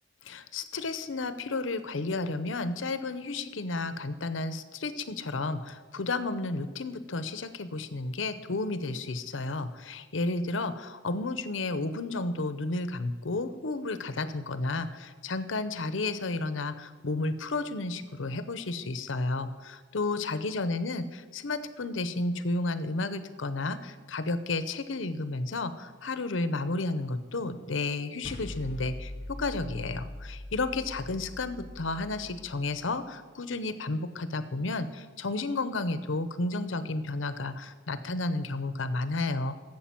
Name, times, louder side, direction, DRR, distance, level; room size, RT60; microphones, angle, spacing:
voice 1, 0.3-39.5, left 2 dB, 80° left, 12 dB, 0.8 m, -32 dB
sound 1, 28.2-32.9, left 1 dB, 35° left, 1.0 m, -42 dB
11.5 x 7.8 x 7.6 m, 1.5 s
head